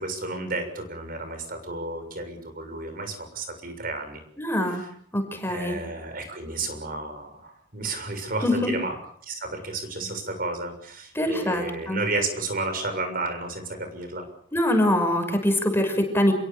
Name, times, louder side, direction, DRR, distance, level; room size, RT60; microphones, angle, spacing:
voice 1, 0.0-4.2 4.8-4.9 5.5-9.0 9.2-14.3, right 2 dB, 50° right, 7 dB, 6.9 m, -32 dB
voice 2, 4.4-4.8 5.1-5.8 8.4-8.7 11.1-12.0 14.5-16.3, left 1 dB, 15° left, 5 dB, 6.1 m, -23 dB
28.5 x 22.5 x 7.1 m, 0.63 s
head